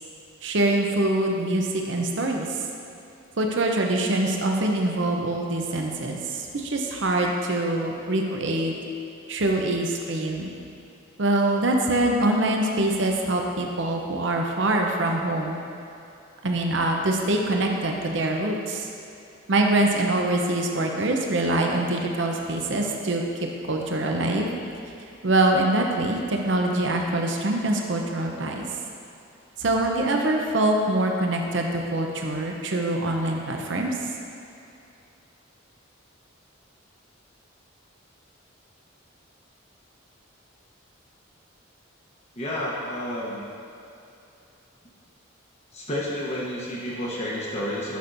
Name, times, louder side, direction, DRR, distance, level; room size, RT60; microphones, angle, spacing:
voice 1, 0.4-2.6 3.4-8.7 9.3-10.5 11.2-15.6 16.4-18.9 19.5-23.2 23.7-24.5 25.2-28.7 29.6-34.0, right 1 dB, 60° right, 1 dB, 0.7 m, -24 dB
voice 2, 42.4-43.4 45.7-48.0, left 1 dB, 35° left, -6 dB, 0.9 m, -30 dB
10.0 x 6.0 x 2.6 m, 2.7 s
head